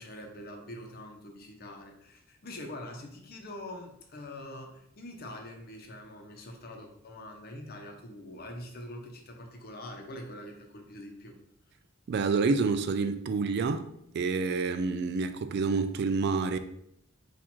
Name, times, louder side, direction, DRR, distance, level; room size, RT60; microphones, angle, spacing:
voice 1, 0.0-11.4, left 1 dB, 50° left, 0.7 m, -44 dB
voice 2, 12.1-13.9 14.1-16.6, right 4 dB, 55° right, 0.3 m, -28 dB
4.2 x 2.4 x 4.3 m
head